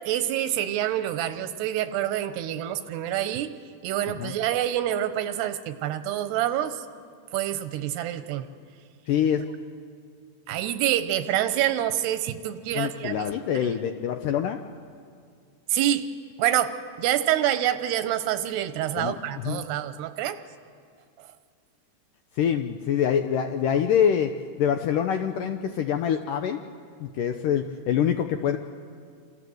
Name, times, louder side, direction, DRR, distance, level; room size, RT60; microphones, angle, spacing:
voice 1, 0.0-3.5 3.8-6.8 7.3-8.5 10.5-13.2 15.7-16.1 16.4-20.4, right 12 dB, 85° right, 11 dB, 3.1 m, -27 dB
voice 2, 9.1-9.4 12.7-14.6 19.0-19.7 22.3-26.6 27.0-28.6, left 8 dB, 80° left, 6 dB, 2.0 m, -25 dB
27.5 x 27.0 x 7.9 m, 2.2 s
omnidirectional pair, 4.7 m